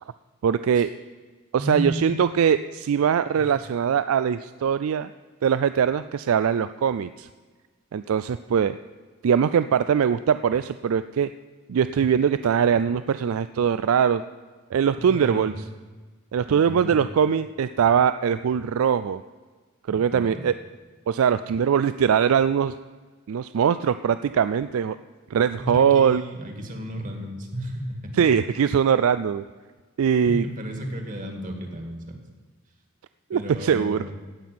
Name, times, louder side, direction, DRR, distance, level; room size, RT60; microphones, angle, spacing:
voice 1, 0.4-0.9 1.5-5.1 5.4-7.3 7.9-8.8 9.2-11.3 11.7-14.2 14.7-15.5 16.3-19.2 19.9-20.5 21.1-22.7 23.3-25.0 25.3-26.2 28.2-29.4 30.0-30.4 33.3-34.0, right 7 dB, 85° right, 13 dB, 0.4 m, -21 dB
voice 2, 1.6-2.1 3.4-3.5 15.0-15.5 16.5-16.9 19.9-20.5 25.6-28.3 30.3-32.2 33.3-34.1, equal, 40° right, 4 dB, 2.0 m, -33 dB
16.0 x 5.9 x 9.3 m, 1.4 s
head